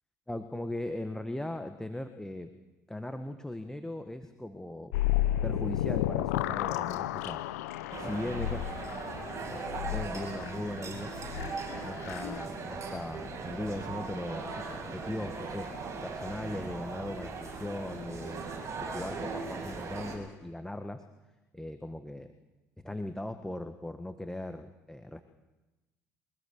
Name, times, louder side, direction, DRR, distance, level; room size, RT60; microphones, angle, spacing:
voice 1, 0.3-2.5 2.9-4.9 5.4-7.4 8.0-8.7 9.4-11.1 11.8-15.7 16.0-18.4 18.8-21.0 21.5-22.3 22.8-25.2, left 1 dB, 5° left, 8 dB, 1.5 m, -38 dB
sound 1, 4.9-12.4, left 13 dB, 75° left, 0.8 m, -33 dB
sound 2, 7.9-20.2, right 4 dB, 35° right, 7.9 m, -39 dB
23.5 x 19.0 x 7.3 m, 1.1 s
hypercardioid pair, 60°, 8 cm